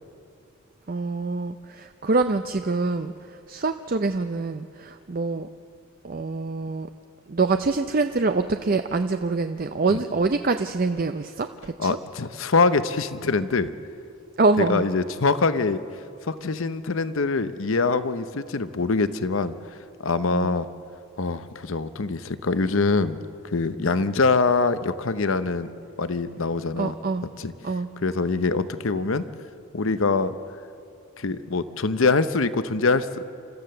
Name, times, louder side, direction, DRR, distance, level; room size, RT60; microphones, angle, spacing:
voice 1, 0.9-5.5 6.0-6.9 7.3-12.0 14.4-14.9 20.3-20.5 26.8-27.2 27.6-27.9, right 3 dB, 40° right, 8 dB, 0.5 m, -25 dB
voice 2, 11.8-13.7 14.6-15.8 16.2-19.5 20.0-20.7 21.2-23.2 23.5-25.7 26.0-27.0 27.4-27.5 28.0-29.2 29.7-30.4 31.2-33.2, left 4 dB, 70° left, 13 dB, 0.8 m, -24 dB
30.0 x 14.0 x 6.8 m, 2.4 s
head